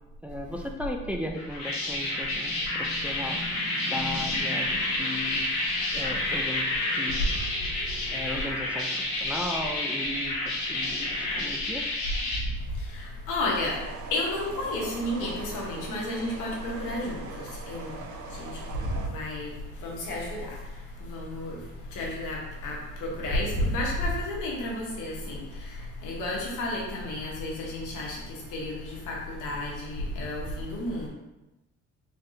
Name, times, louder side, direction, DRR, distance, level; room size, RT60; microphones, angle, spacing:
voice 1, 0.2-3.4 3.8-5.5 5.9-7.2 8.1-11.9, left 1 dB, 5° right, 2 dB, 0.3 m, -36 dB
sound 1, 1.3-12.4, left 2 dB, 65° left, 1.1 m, -30 dB
sound 2, 1.7-11.6, right 1 dB, 20° right, 0.8 m, -45 dB
voice 2, 12.8-13.8 14.1-18.0 18.3-19.5 19.8-20.6 21.0-21.6 21.9-31.1, left 1 dB, 85° left, -2 dB, 1.1 m, -32 dB
sound 3, 13.6-19.1, right 4 dB, 75° right, 0.7 m, -42 dB
3.6 x 3.4 x 2.7 m, 1.0 s
cardioid pair, 90°, 30 cm